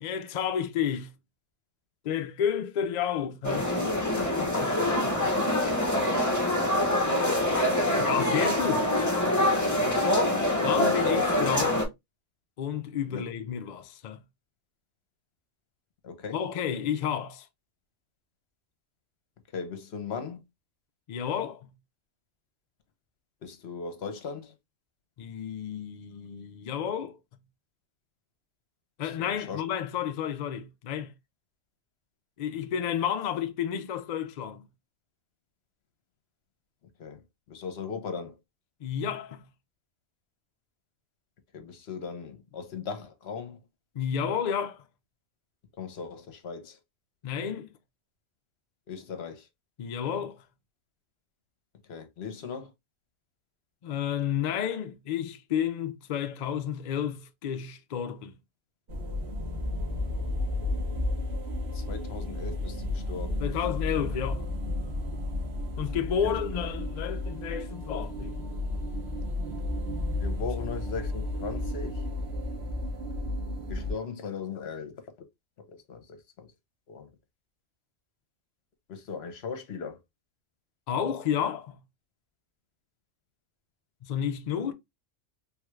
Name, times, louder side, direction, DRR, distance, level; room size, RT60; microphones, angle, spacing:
voice 1, 0.0-1.1 2.0-3.7 4.2-5.3 8.0-9.1 10.6-11.9 12.6-14.2 16.3-17.5 21.1-21.7 25.2-27.2 29.0-31.1 32.4-34.6 38.8-39.4 43.9-44.8 47.2-47.7 49.8-50.4 53.8-58.3 63.4-64.5 65.8-68.4 80.9-81.8 84.0-84.7, left 8 dB, 80° left, 0.3 m, -31 dB
sound 1, 3.4-11.9, left 1 dB, 20° left, 0.6 m, -25 dB
voice 2, 16.0-16.4 19.5-20.4 23.4-24.5 29.0-29.6 37.0-37.2 37.5-38.3 41.5-43.6 45.8-46.8 48.9-49.4 51.9-52.7 61.7-63.4 66.2-66.4 70.2-71.9 73.7-75.0 75.9-76.0 76.4-76.5 76.9-77.1 78.9-80.0, left 5 dB, 60° left, 0.9 m, -38 dB
sound 2, 58.9-73.9, left 2 dB, 60° right, 1.1 m, -32 dB
3.5 x 2.3 x 3.0 m
omnidirectional pair, 1.3 m